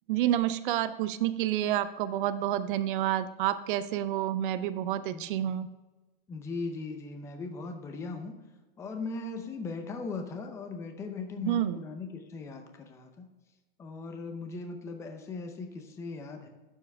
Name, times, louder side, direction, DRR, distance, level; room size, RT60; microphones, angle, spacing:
voice 1, 0.1-5.7 11.4-11.8, right 12 dB, 55° right, 12 dB, 0.6 m, -29 dB
voice 2, 6.3-8.4 8.8-13.3 13.8-16.5, left 3 dB, 10° left, 5 dB, 0.6 m, -38 dB
12.0 x 7.2 x 3.4 m, 1.1 s
supercardioid pair, 170°, 30 cm